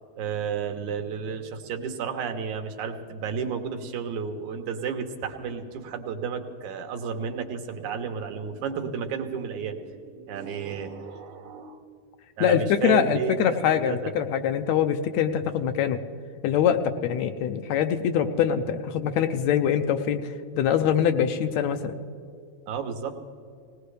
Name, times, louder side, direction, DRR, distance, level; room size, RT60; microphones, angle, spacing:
voice 1, 0.2-11.8 12.4-14.1 22.7-23.2, right 6 dB, 80° right, 5 dB, 2.5 m, -32 dB
voice 2, 12.4-16.0 16.4-21.9, left 8 dB, 80° left, 7 dB, 1.8 m, -24 dB
20.0 x 18.5 x 3.3 m, 2.4 s
omnidirectional pair, 3.4 m